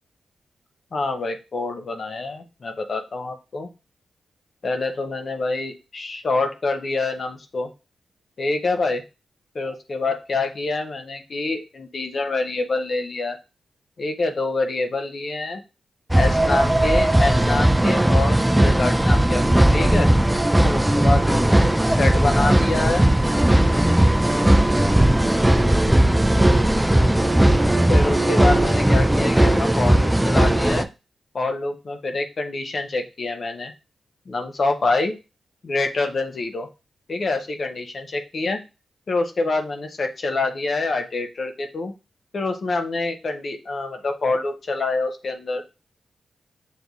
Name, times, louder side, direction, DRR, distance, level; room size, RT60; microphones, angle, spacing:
voice 1, 0.9-3.7 4.6-7.7 8.4-9.0 9.5-13.4 14.0-15.6 16.1-20.1 20.6-23.1 27.9-30.9 31.3-33.7 34.3-35.1 35.6-36.7 37.1-38.6 39.1-41.9 42.3-45.6, left 3 dB, 55° left, 5 dB, 0.6 m, -26 dB
sound 1, 16.1-30.9, right 1 dB, 10° right, 0.3 m, -17 dB
6.4 x 2.6 x 2.3 m, 0.29 s
cardioid pair, 60°, 0 cm